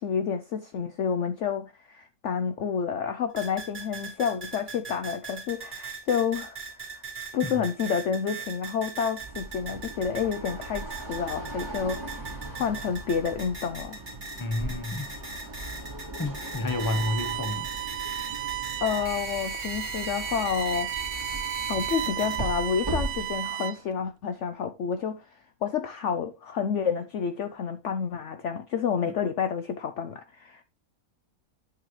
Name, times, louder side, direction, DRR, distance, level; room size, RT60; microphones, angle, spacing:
voice 1, 0.0-7.0 7.3-14.0 18.8-20.9 21.7-30.6, left 7 dB, 60° left, 0.8 m, -29 dB
sound 1, 3.4-22.4, right 3 dB, 30° right, 2.0 m, -40 dB
sound 2, 9.2-23.5, right 2 dB, 15° right, 2.3 m, -39 dB
voice 2, 14.4-15.1 16.2-17.7 29.0-29.1, left 2 dB, 15° left, 0.9 m, -30 dB
Bowed string instrument, 16.7-23.9, right 13 dB, 65° right, 0.9 m, -34 dB
8.8 x 7.4 x 3.2 m
omnidirectional pair, 1.6 m